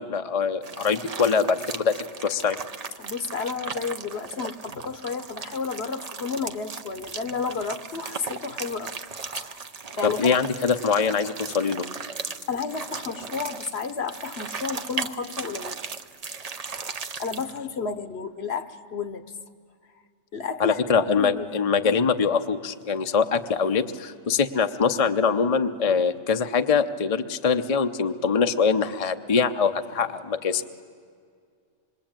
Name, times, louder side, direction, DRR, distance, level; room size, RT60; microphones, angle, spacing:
voice 1, 0.0-2.6 10.0-11.9 20.6-30.7, left 5 dB, 35° left, 7 dB, 0.7 m, -23 dB
sound 1, 0.6-17.6, right 5 dB, 40° right, 0.7 m, -37 dB
voice 2, 3.0-9.7 10.0-10.4 12.5-15.8 17.2-19.2 20.3-21.5, left 5 dB, 60° left, 9 dB, 1.3 m, -32 dB
26.0 x 22.0 x 8.9 m, 2.2 s
omnidirectional pair, 1.3 m